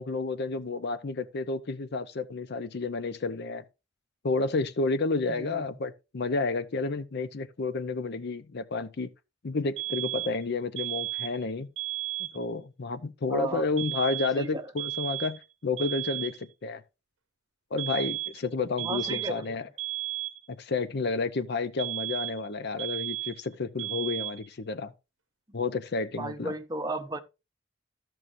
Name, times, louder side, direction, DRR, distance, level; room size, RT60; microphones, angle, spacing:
voice 1, 0.0-3.6 4.2-9.1 9.4-11.7 12.2-16.8 17.7-19.7 20.5-24.9 25.5-26.5, left 3 dB, 60° left, 0.6 m, -31 dB
voice 2, 5.3-5.6 13.3-13.7 14.4-14.7 18.8-19.6 25.5-25.6 26.2-27.2, right 2 dB, 20° right, 0.8 m, -35 dB
sound 1, 9.8-10.4 10.8-11.4 11.8-12.4 13.8-14.4 14.8-15.4 15.8-16.4 17.8-18.4 18.8-19.4 19.8-20.4 21.8-22.5 22.8-23.5 23.8-24.5, right 18 dB, 75° right, 0.7 m, -34 dB
14.0 x 6.2 x 2.6 m
head